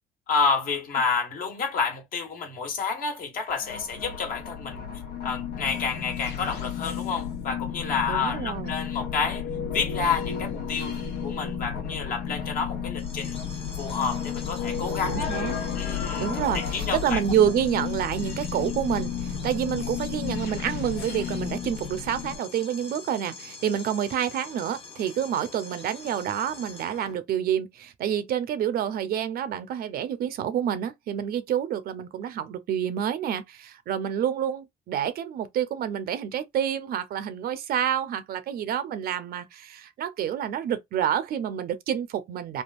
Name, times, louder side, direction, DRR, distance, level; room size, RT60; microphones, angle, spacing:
voice 1, 0.3-4.9 5.2-9.5 9.7-13.4 13.8-15.3 15.8-16.3 16.5-17.2, left 5 dB, 55° left, 1.3 m, -29 dB
sound 1, 3.5-22.4, left 7 dB, 85° left, 1.1 m, -32 dB
voice 2, 8.1-8.8 15.1-15.5 16.2-42.6, right 9 dB, 65° right, 0.7 m, -28 dB
sound 2, 13.0-27.1, left 4 dB, 35° left, 0.9 m, -44 dB
3.5 x 2.3 x 2.4 m
cardioid pair, 110°, 17 cm